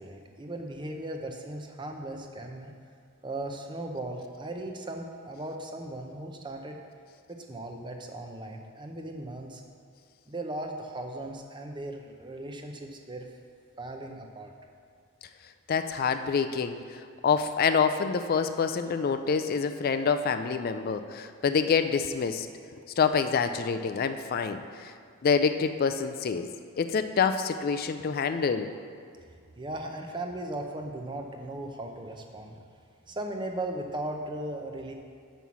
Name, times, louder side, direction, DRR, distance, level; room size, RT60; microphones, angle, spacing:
voice 1, 0.0-2.7 3.2-6.8 7.3-9.6 10.3-13.3 13.8-14.5 29.6-32.6 33.1-34.9, right 1 dB, 20° right, 3 dB, 0.6 m, -37 dB
voice 2, 15.7-22.5 23.0-24.9 25.2-26.5 26.8-28.7, left 6 dB, 40° left, 9 dB, 0.3 m, -27 dB
6.2 x 5.5 x 7.0 m, 2.2 s
head